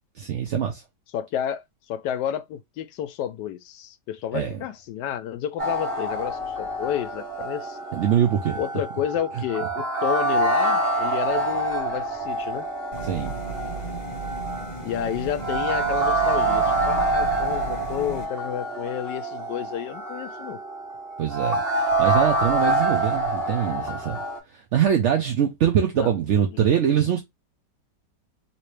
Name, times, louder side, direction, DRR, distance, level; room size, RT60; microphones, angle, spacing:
voice 1, 0.2-0.8 4.3-4.6 7.9-8.6 13.0-13.3 21.2-27.2, right 9 dB, 75° right, 0.6 m, -23 dB
voice 2, 1.1-1.6 1.9-7.8 8.6-12.7 14.8-20.6 26.0-26.1, left 10 dB, 80° left, 1.2 m, -30 dB
sound 1, 5.6-24.4, right 2 dB, 35° right, 1.5 m, -26 dB
sound 2, 12.9-18.2, right 3 dB, 35° left, 0.7 m, -35 dB
3.1 x 2.9 x 3.1 m
omnidirectional pair, 1.9 m